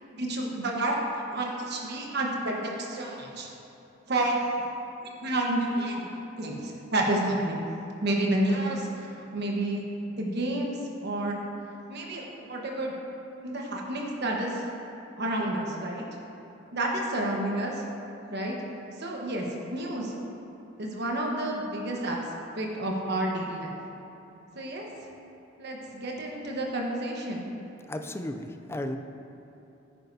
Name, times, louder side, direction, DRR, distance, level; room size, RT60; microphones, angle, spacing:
voice 1, 0.2-1.0 1.3-3.5 4.1-4.4 5.2-6.0 6.4-7.6 8.0-9.8 10.2-10.8 11.0-11.4 11.9-12.9 13.4-14.6 15.2-16.0 16.7-17.8 18.3-18.6 19.0-19.4 19.7-20.1 20.8-22.2 22.6-23.7 24.5-24.9 25.6-27.4, right 1 dB, 60° right, -1 dB, 1.2 m, -30 dB
voice 2, 27.9-29.0, left 1 dB, 15° left, 7 dB, 0.4 m, -34 dB
9.9 x 9.4 x 2.7 m, 3.0 s
head